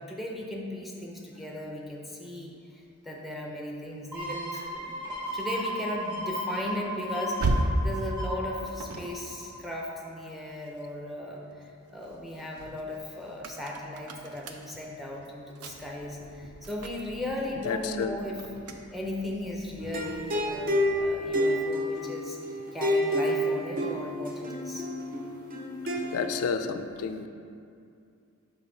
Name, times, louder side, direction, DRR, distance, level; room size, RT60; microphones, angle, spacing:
voice 1, 0.0-5.1 5.3-18.5 18.9-24.9, left 1 dB, ahead, -2 dB, 0.6 m, -37 dB
sound 1, 4.1-9.6 10.0-10.1, equal, 20° right, 1.5 m, -35 dB
sound 2, 4.5-11.1 11.5-21.3, right 1 dB, 85° right, 0.5 m, -37 dB
voice 2, 17.6-18.2 26.1-27.3, left 6 dB, 80° left, 8 dB, 0.4 m, -30 dB
sound 3, 19.8-26.5, equal, 40° right, 0.6 m, -29 dB
5.5 x 5.0 x 3.9 m, 2.5 s
head